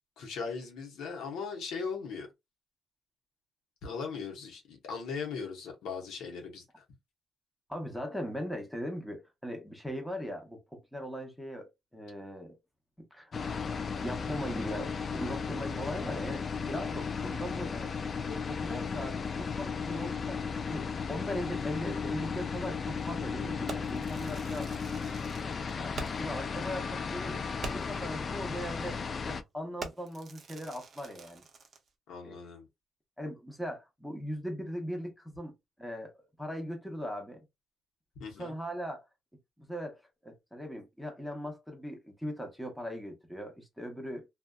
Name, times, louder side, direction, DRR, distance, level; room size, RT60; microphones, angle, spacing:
voice 1, 0.2-2.3 3.8-6.8 32.1-32.7 38.2-38.5, left 5 dB, 85° left, 0.9 m, -39 dB
voice 2, 7.7-12.6 13.0-13.3 14.0-17.9 18.2-20.4 20.7-24.7 25.7-27.4 27.7-31.4 32.2-32.4 33.2-36.1 36.4-37.4 38.4-39.0 39.6-44.3, equal, ahead, 0.8 m, -39 dB
sound 1, 13.3-29.4, left 5 dB, 45° left, 0.3 m, -35 dB
Fireworks, 23.7-26.4 26.7-26.8 27.2-27.3 27.6-28.1 28.7-28.9 29.2-29.4 29.8-31.9, right 3 dB, 50° right, 0.6 m, -45 dB
2.6 x 2.3 x 2.2 m
cardioid pair, 90°, 0 cm